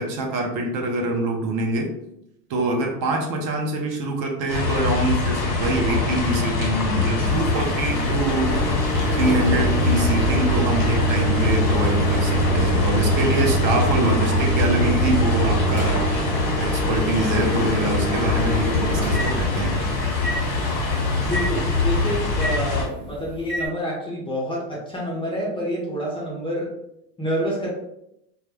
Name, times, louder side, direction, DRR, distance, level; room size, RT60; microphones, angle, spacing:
voice 1, 0.0-1.9 2.5-8.7 9.1-16.3 16.6-19.8, right 2 dB, 45° right, 2 dB, 0.6 m, -25 dB
sound 1, 4.5-22.8, left 3 dB, 40° left, 1.1 m, -23 dB
Microwave oven, 7.2-23.7, right 2 dB, 20° right, 1.3 m, -25 dB
voice 2, 21.2-26.7 27.2-27.7, equal, 10° left, -5 dB, 0.5 m, -28 dB
2.2 x 2.1 x 3.1 m, 0.80 s
supercardioid pair, 110°, 48 cm